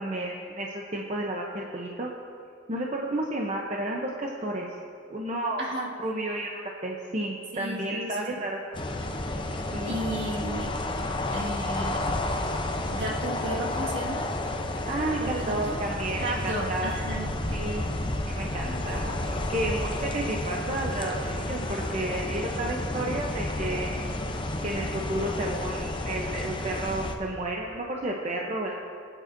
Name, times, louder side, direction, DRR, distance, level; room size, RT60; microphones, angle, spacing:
voice 1, 0.0-2.1 2.7-4.7 5.1-5.6 6.0-8.6 9.7-10.0 14.7-16.9 17.5-17.9 18.3-24.1 24.6-28.8, right 1 dB, 35° right, -1 dB, 0.8 m, -32 dB
voice 2, 5.6-5.9 7.5-8.2 9.9-10.8 11.3-12.0 12.9-14.3 15.2-15.8 16.2-17.3, right 1 dB, 60° right, -3 dB, 1.8 m, -33 dB
sound 1, 8.7-27.2, left 1 dB, 25° left, 0.7 m, -31 dB
22.0 x 9.1 x 2.7 m, 2.3 s
head